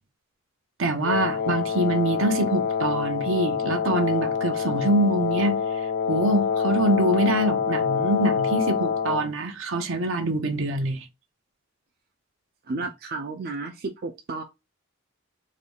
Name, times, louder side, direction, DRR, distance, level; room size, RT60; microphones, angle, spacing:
voice 1, 0.8-5.6 6.1-11.0, right 1 dB, 70° right, 0.8 m, -25 dB
Wind instrument woodwind instrument, 1.0-9.3, left 7 dB, 45° left, 0.3 m, -26 dB
voice 2, 12.7-14.4, right 3 dB, 45° right, 0.4 m, -32 dB
3.8 x 2.3 x 3.4 m
head